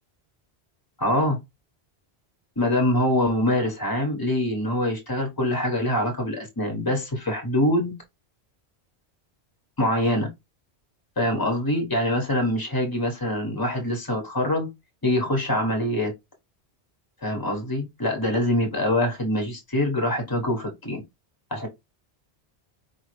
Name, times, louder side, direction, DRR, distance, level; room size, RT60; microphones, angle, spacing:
voice 1, 1.0-1.4 2.6-7.9 9.8-10.3 11.2-14.7 15.0-16.1 17.2-21.0 21.5-21.7, left 1 dB, 20° left, 1.3 m, -24 dB
4.9 x 2.5 x 3.2 m
omnidirectional pair, 1.1 m